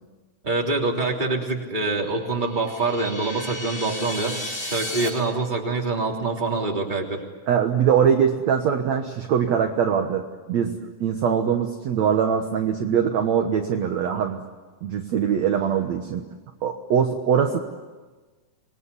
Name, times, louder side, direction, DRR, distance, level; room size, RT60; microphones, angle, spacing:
voice 1, 0.4-7.2, right 3 dB, 15° right, 0 dB, 3.1 m, -25 dB
sound 1, 2.3-5.1, left 1 dB, 15° left, 5.3 m, -33 dB
voice 2, 7.5-14.4 14.8-16.2 16.6-17.6, right 7 dB, 60° right, 4 dB, 2.2 m, -22 dB
27.0 x 21.0 x 10.0 m, 1.3 s
omnidirectional pair, 4.0 m